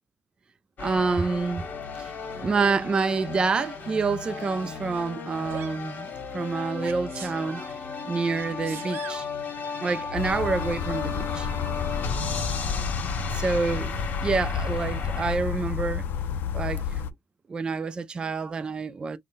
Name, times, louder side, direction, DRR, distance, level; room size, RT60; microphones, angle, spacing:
sound 1, 0.8-15.4, left 4 dB, 40° left, 1.2 m, -34 dB
voice 1, 0.8-1.7 2.0-2.1 2.4-6.1 6.3-7.6 8.0-9.3 9.8-11.5 13.3-13.9 14.2-16.1 16.5-17.0 17.5-19.2, right 4 dB, 20° right, 0.3 m, -27 dB
Sneeze, 5.5-5.8 6.8-7.7 8.4-9.3 10.6-10.7, right 7 dB, 60° right, 0.8 m, -42 dB
sound 2, 10.1-17.1, left 7 dB, 55° left, 0.4 m, -31 dB
3.9 x 2.1 x 3.6 m
cardioid pair, 145°, 4 cm